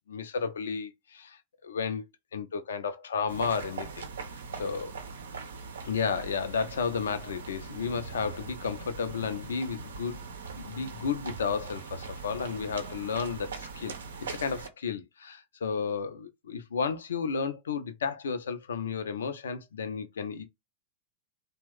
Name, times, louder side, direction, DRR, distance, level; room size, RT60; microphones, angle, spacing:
voice 1, 0.1-2.0 2.3-4.0 4.6-4.9 5.8-10.2 10.5-13.9 14.2-20.4, left 6 dB, 65° left, 0.5 m, -32 dB
sound 1, 3.3-14.7, right 5 dB, 65° right, 0.6 m, -41 dB
2.9 x 2.1 x 3.3 m
figure-of-eight pair, 90°, 0 cm